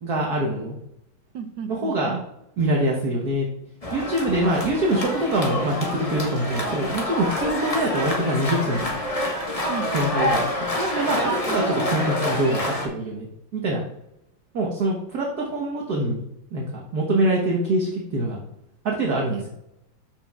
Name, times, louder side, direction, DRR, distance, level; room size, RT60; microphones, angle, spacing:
voice 1, 0.0-0.8 1.7-2.2 2.6-3.5 3.9-9.0 9.9-13.3 13.5-13.8 14.5-16.2 16.5-18.4 18.8-19.4, right 1 dB, 55° right, -2 dB, 1.5 m, -24 dB
voice 2, 1.3-2.2 9.7-9.9 11.2-11.7 19.3-19.5, right 7 dB, 70° right, 8 dB, 1.2 m, -34 dB
sound 1, 3.8-12.9, left 1 dB, 20° left, 1.0 m, -27 dB
13.0 x 6.1 x 2.4 m, 0.83 s
omnidirectional pair, 2.3 m